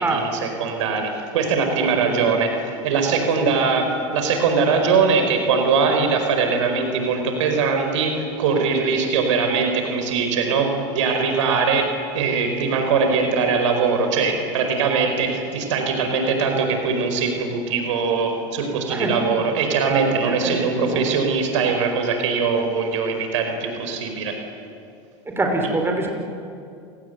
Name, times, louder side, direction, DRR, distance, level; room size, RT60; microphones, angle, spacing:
voice 1, 0.0-24.3, right 5 dB, 85° right, 5 dB, 4.9 m, -21 dB
voice 2, 1.8-2.3 3.4-3.5 18.9-19.2 20.3-21.1 25.3-26.1, right 2 dB, 15° right, 2 dB, 5.3 m, -25 dB
28.5 x 18.5 x 9.4 m, 2.5 s
supercardioid pair, 100°, 15 cm